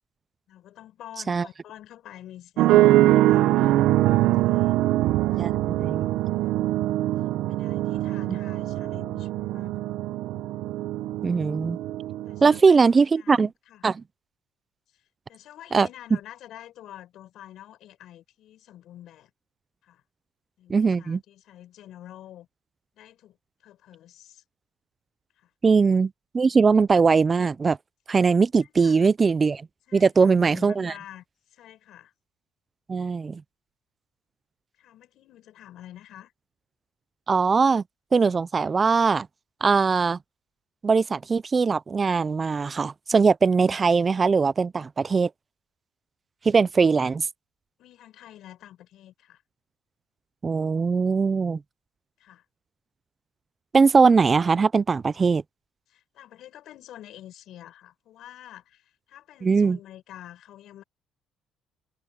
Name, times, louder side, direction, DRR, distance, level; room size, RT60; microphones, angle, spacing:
voice 1, 0.5-4.9 5.9-6.7 7.5-9.8 12.3-13.8 15.3-19.3 19.8-20.0 20.6-22.5 22.9-23.4 23.6-24.4 25.4-25.5 28.6-29.0 29.9-31.2 31.5-32.1 34.8-36.3 46.8-47.3 47.8-49.4 52.2-52.4 55.9-60.8, left 12 dB, 70° left, 7.6 m, -48 dB
sound 1, 2.6-12.6, right 15 dB, 80° right, 0.6 m, -23 dB
voice 2, 11.2-11.8 12.4-13.5 13.8-14.0 15.7-15.9 20.7-21.2 25.6-27.8 28.1-29.6 29.9-30.9 32.9-33.4 37.3-37.8 38.1-39.3 39.6-40.2 40.8-45.3 46.4-47.3 50.4-51.6 53.7-55.4 59.4-59.8, right 5 dB, 25° right, 0.4 m, -20 dB
cardioid pair, 120°, 0 cm